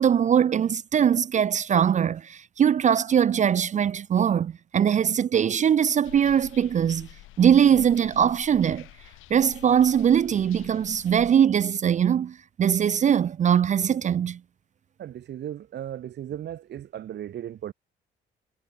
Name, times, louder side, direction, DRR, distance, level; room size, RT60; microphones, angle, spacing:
voice 1, 0.0-7.1 7.4-8.9 9.3-14.4, right 8 dB, 40° right, 0.4 m, -21 dB
sound 1, 6.0-11.3, left 16 dB, 90° left, 1.5 m, -48 dB
voice 2, 15.0-17.7, right 11 dB, 60° right, 0.9 m, -36 dB
cardioid pair, 90°, 20 cm